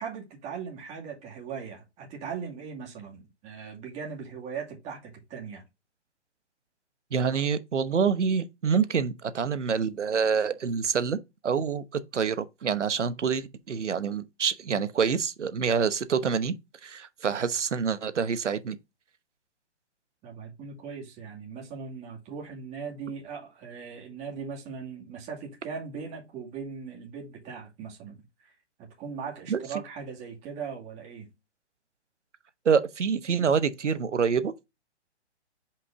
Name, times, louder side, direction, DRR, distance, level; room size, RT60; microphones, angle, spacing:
voice 1, 0.0-5.6 20.2-28.5 28.8-31.3, right 6 dB, 20° right, 2.3 m, -39 dB
voice 2, 7.1-11.2 11.4-16.5 16.8-18.8 29.5-29.6 32.6-34.6, right 6 dB, 90° right, 1.1 m, -26 dB
5.7 x 5.2 x 3.5 m
hypercardioid pair, 150°, 35 cm